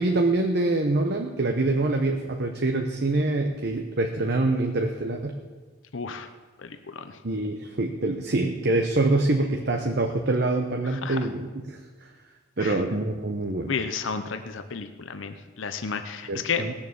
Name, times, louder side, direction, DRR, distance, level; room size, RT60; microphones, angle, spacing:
voice 1, 0.0-5.4 7.2-11.8 12.6-13.7 16.3-16.7, right 2 dB, 55° right, 3 dB, 0.9 m, -25 dB
voice 2, 5.9-6.3 6.6-7.2 10.8-11.2 12.6-12.8 13.7-16.7, left 5 dB, 70° left, 9 dB, 0.7 m, -32 dB
18.0 x 7.0 x 7.0 m, 1.4 s
head